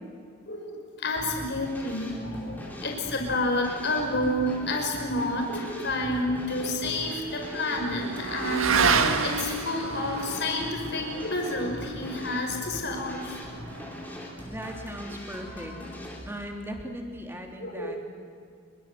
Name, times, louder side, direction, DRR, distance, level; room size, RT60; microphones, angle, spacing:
voice 1, 0.5-13.4 17.6-18.0, left 1 dB, 50° left, 1 dB, 5.1 m, -30 dB
sound 1, 1.2-16.3, equal, 10° left, 4.3 m, -41 dB
Motorcycle / Accelerating revving vroom, 5.8-14.6, right 4 dB, 70° right, 1.9 m, -31 dB
voice 2, 14.5-15.7 16.3-18.0, equal, 10° right, 2 dB, 3.1 m, -38 dB
26.5 x 23.5 x 8.0 m, 2.2 s
head